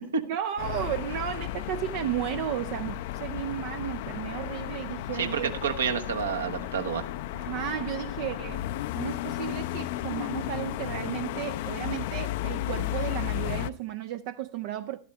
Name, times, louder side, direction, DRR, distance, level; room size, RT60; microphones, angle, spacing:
voice 1, 0.3-5.5 7.3-8.7 9.0-15.0, right 11 dB, 50° right, 0.5 m, -34 dB
sound 1, 0.6-13.7, left 14 dB, 50° left, 0.5 m, -34 dB
voice 2, 5.1-7.1, right 6 dB, 65° right, 1.3 m, -29 dB
12.5 x 12.5 x 3.3 m
figure-of-eight pair, 90°, 0 cm